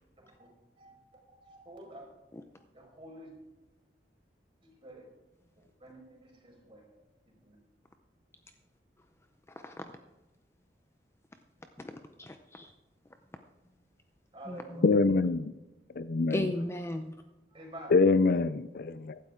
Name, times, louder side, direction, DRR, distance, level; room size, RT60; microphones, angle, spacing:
voice 1, 0.2-0.5 0.8-1.0 1.3-2.1 2.7-3.3 4.6-5.1 5.6-6.8 7.3-7.6 14.3-14.9 17.5-18.0, right 1 dB, 30° right, -2 dB, 5.1 m, -49 dB
voice 2, 11.8-12.7 14.5-14.9 16.3-17.1, left 1 dB, 15° left, 7 dB, 0.6 m, -36 dB
voice 3, 14.8-15.5 15.9-16.5 17.9-19.2, left 3 dB, 60° left, 15 dB, 0.5 m, -25 dB
16.0 x 12.5 x 3.7 m, 1.0 s
head